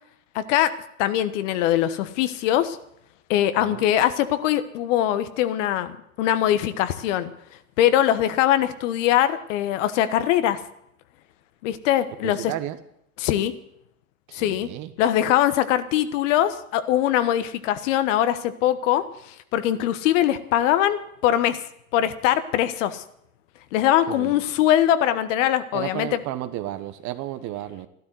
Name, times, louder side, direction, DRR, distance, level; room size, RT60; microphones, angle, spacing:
voice 1, 0.3-2.8 3.3-7.3 7.8-10.6 11.6-12.4 13.2-13.5 14.3-14.7 15.0-21.6 21.9-23.0 23.7-26.1, left 12 dB, 60° left, 12 dB, 1.3 m, -22 dB
voice 2, 12.2-12.8 14.3-14.9 24.1-24.4 25.7-27.9, right 13 dB, 40° right, 11 dB, 1.3 m, -33 dB
12.5 x 12.5 x 7.9 m, 0.75 s
hypercardioid pair, 100°, 43 cm